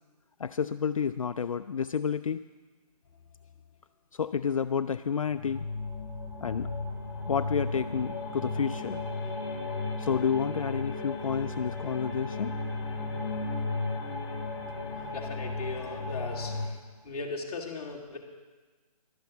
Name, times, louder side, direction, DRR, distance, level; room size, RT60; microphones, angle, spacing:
voice 1, 0.4-2.4 4.1-5.7 6.4-6.7 7.3-9.0 10.0-12.5, left 6 dB, 55° left, 9 dB, 0.4 m, -30 dB
sound 1, 5.2-16.7, left 3 dB, 30° left, 2.1 m, -35 dB
voice 2, 15.0-16.8 17.0-18.2, left 3 dB, 10° left, -6 dB, 1.4 m, -38 dB
11.5 x 9.2 x 6.9 m, 1.3 s
hypercardioid pair, 175°, 20 cm